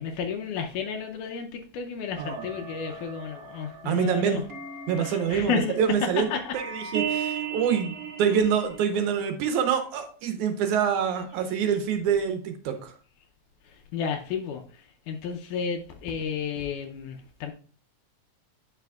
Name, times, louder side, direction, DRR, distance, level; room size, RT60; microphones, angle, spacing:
voice 1, 0.0-4.4 5.0-6.5 13.7-17.5, left 6 dB, 80° left, 2.1 m, -32 dB
sound 1, 2.1-8.8, right 7 dB, 35° right, 1.5 m, -36 dB
voice 2, 3.9-4.4 4.9-6.3 6.5-12.9, right 7 dB, 75° right, 2.2 m, -26 dB
9.0 x 6.0 x 2.3 m
omnidirectional pair, 3.7 m